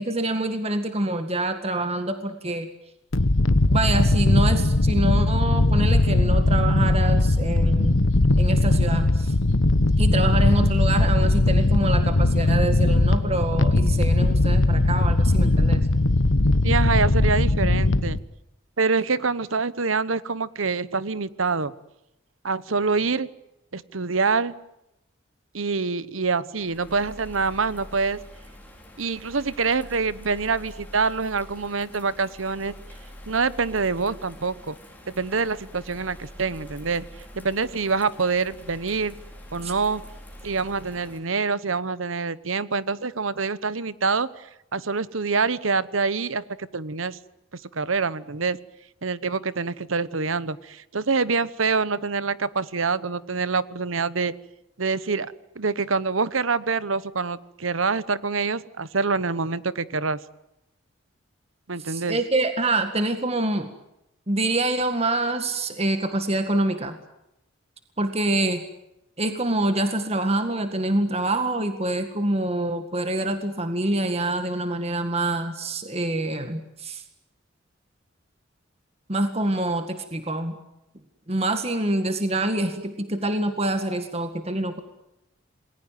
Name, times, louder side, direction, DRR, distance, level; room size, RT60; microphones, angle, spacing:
voice 1, 0.0-2.7 3.7-8.0 8.4-9.3 10.0-15.8 39.6-39.7 61.9-63.7 64.3-67.0 68.0-68.6 69.2-77.0 79.1-80.5 81.3-84.8, right 2 dB, 30° right, 8 dB, 1.9 m, -26 dB
sound 1, 3.1-18.2, left 2 dB, 80° left, 1.2 m, -19 dB
voice 2, 16.6-18.2 18.8-21.7 22.4-23.3 23.7-24.5 25.5-28.2 29.0-32.7 33.3-34.7 35.1-37.1 37.3-39.1 39.5-40.0 40.4-44.3 44.7-47.2 47.7-48.6 49.0-54.3 54.8-60.2 61.7-62.2, right 4 dB, 90° right, 17 dB, 1.1 m, -25 dB
Bird vocalization bird call bird song / Rain, 26.6-41.2, equal, 10° left, 5.6 m, -45 dB
28.0 x 21.0 x 9.2 m, 0.86 s
head